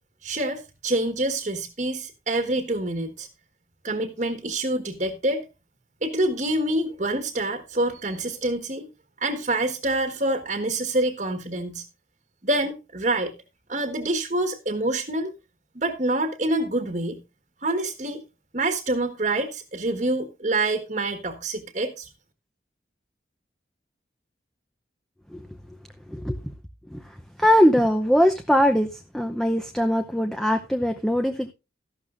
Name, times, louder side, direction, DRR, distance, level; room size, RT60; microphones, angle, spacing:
voice 1, 0.2-3.3 3.8-5.4 6.0-8.9 9.2-11.8 12.4-13.3 13.7-15.3 15.7-17.2 17.6-18.2 18.5-22.1, right 2 dB, 40° right, 7 dB, 1.5 m, -26 dB
voice 2, 27.4-31.5, equal, ahead, 6 dB, 0.7 m, -21 dB
14.0 x 12.0 x 2.6 m, 0.28 s
head